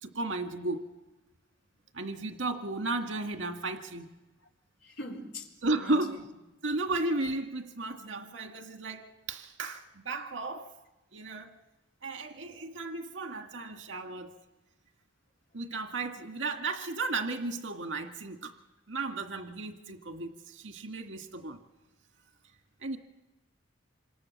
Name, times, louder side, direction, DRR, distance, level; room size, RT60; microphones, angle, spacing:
voice 1, 0.0-0.8 1.9-4.1 5.6-6.2 6.6-10.7 11.1-11.6 12.0-14.3 15.5-18.5 18.9-21.6 22.8-23.0, right 2 dB, 80° right, 2.0 m, -34 dB
voice 2, 4.8-6.2, left 1 dB, 75° left, 4.1 m, -43 dB
27.0 x 27.0 x 7.4 m
head